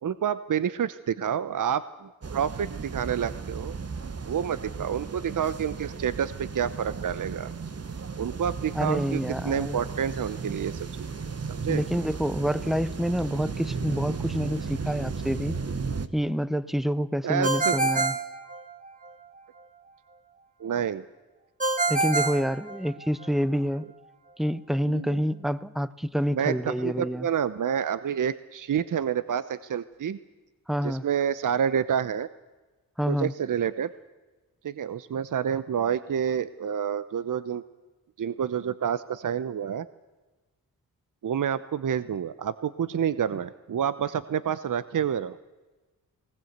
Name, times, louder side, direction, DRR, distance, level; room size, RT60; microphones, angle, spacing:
voice 1, 0.0-3.8 4.3-7.5 8.2-11.8 17.2-17.9 20.6-21.0 24.8-25.2 26.3-30.2 30.8-32.3 33.1-33.9 34.6-37.6 38.2-39.9 41.2-45.4, right 8 dB, 55° right, 15 dB, 0.8 m, -29 dB
sound 1, 2.2-16.1, right 5 dB, 40° right, 1.3 m, -35 dB
voice 2, 8.8-9.9 11.7-15.6 16.1-18.1 21.9-23.8 24.4-27.3 30.7-31.0 33.0-33.3, equal, ahead, 16 dB, 1.0 m, -27 dB
Ringtone, 17.4-19.1 21.6-23.3, right 3 dB, 20° right, 2.6 m, -27 dB
20.0 x 19.0 x 8.1 m, 1.2 s
supercardioid pair, 40°, 37 cm